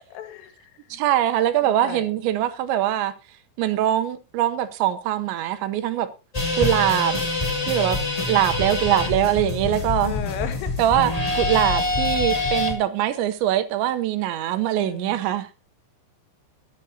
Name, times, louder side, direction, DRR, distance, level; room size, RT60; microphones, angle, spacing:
voice 1, 0.1-1.0 1.6-2.1 10.0-10.8 14.8-15.2, left 10 dB, 85° left, 4.2 m, -35 dB
voice 2, 0.9-3.1 3.6-6.1 6.6-7.2 7.6-8.0 8.3-10.1 10.8-15.6, right 12 dB, 75° right, 2.9 m, -22 dB
sound 1, 6.3-12.7, left 2 dB, 65° left, 0.4 m, -25 dB
22.0 x 9.6 x 2.7 m
omnidirectional pair, 5.7 m